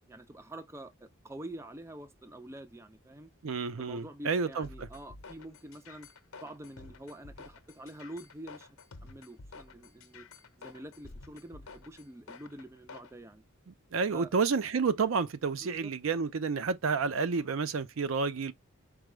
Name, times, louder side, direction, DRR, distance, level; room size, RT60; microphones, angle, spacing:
voice 1, 0.1-3.3 3.8-6.1 6.4-8.7 9.0-10.3 10.6-13.4 14.1-14.3 15.6-15.9, right 1 dB, 15° right, 0.4 m, -46 dB
voice 2, 3.4-4.9 13.9-18.5, right 5 dB, 65° right, 0.5 m, -30 dB
sound 1, 4.6-13.1, left 3 dB, 80° left, 0.8 m, -50 dB
4.8 x 2.3 x 3.0 m
head